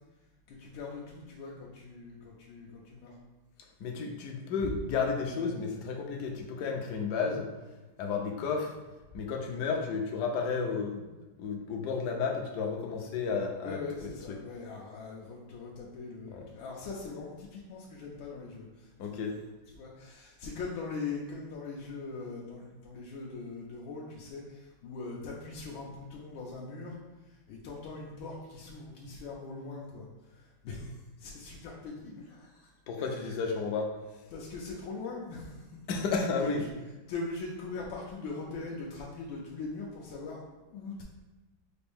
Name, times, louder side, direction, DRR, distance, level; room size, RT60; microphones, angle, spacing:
voice 1, 0.5-3.2 13.6-18.9 19.7-27.0 27.2-33.4 34.3-35.8 36.4-36.7 37.1-41.0, left 3 dB, 85° left, -3 dB, 1.4 m, -41 dB
voice 2, 3.8-7.5 8.0-8.8 9.1-11.0 11.4-14.1 16.3-16.4 19.0-19.4 32.9-34.1 35.9-36.6, left 5 dB, 70° left, 2 dB, 1.0 m, -32 dB
4.9 x 2.6 x 3.4 m, 1.1 s
omnidirectional pair, 2.1 m